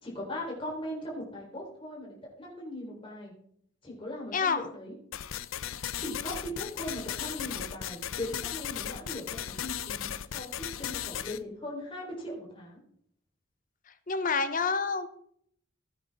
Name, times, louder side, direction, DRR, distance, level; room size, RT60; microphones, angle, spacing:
voice 1, 0.0-3.3 3.8-4.9 6.0-10.5 10.8-12.8, left 1 dB, 25° left, -3 dB, 3.8 m, -39 dB
voice 2, 4.3-4.7 13.9-15.1, left 5 dB, 40° left, 11 dB, 0.9 m, -28 dB
sound 1, 5.1-11.4, left 10 dB, 85° left, 0.6 m, -36 dB
16.0 x 9.0 x 3.6 m, 0.67 s
head